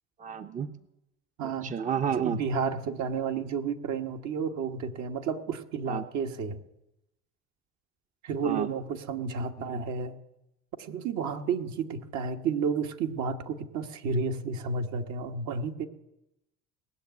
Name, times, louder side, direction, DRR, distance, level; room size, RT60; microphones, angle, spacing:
voice 1, 0.2-0.7 1.6-2.4 5.9-6.0 8.4-8.7, right 8 dB, 25° right, 9 dB, 0.7 m, -30 dB
voice 2, 1.4-1.8 2.1-6.6 8.2-10.2 10.8-15.9, right 5 dB, 60° right, 5 dB, 1.4 m, -31 dB
18.5 x 6.9 x 9.3 m, 0.90 s
supercardioid pair, 85°, 31 cm